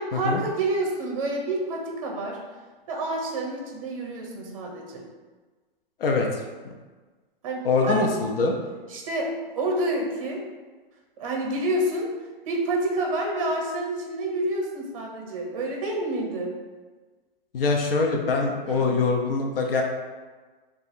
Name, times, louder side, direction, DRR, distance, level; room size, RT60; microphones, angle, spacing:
voice 1, 0.0-2.4 2.9-5.0 7.4-8.1 8.9-9.3 9.5-10.4 11.2-12.1 12.5-16.6 18.7-18.8, right 1 dB, 35° right, 0 dB, 0.6 m, -28 dB
voice 2, 6.0-6.4 7.6-8.6 17.5-19.8, left 3 dB, 75° left, 2 dB, 0.6 m, -23 dB
2.7 x 2.4 x 4.0 m, 1.3 s
hypercardioid pair, 180°, 29 cm